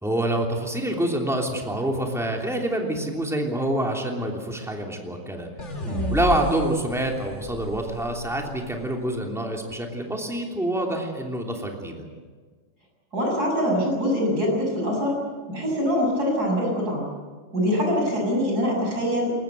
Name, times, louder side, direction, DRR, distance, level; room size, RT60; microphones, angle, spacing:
voice 1, 0.0-5.5 6.1-12.0, right 1 dB, ahead, 0 dB, 3.0 m, -26 dB
sound 1, 5.6-8.8, left 3 dB, 35° left, 2.3 m, -33 dB
voice 2, 13.1-15.2 15.5-17.1 17.5-19.4, equal, 50° right, -1 dB, 7.6 m, -24 dB
22.0 x 20.0 x 8.2 m, 1.5 s
omnidirectional pair, 2.2 m